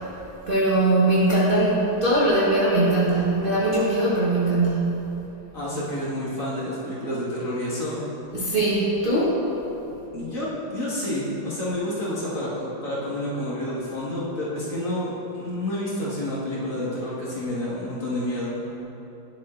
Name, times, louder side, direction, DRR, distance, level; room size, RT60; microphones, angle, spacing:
voice 1, 0.5-5.0 8.3-9.3, right 2 dB, 35° right, -10 dB, 1.0 m, -21 dB
voice 2, 5.5-8.0 10.1-18.5, left 1 dB, 45° left, -8 dB, 1.8 m, -29 dB
10.5 x 7.1 x 2.5 m, 3.0 s
omnidirectional pair, 2.1 m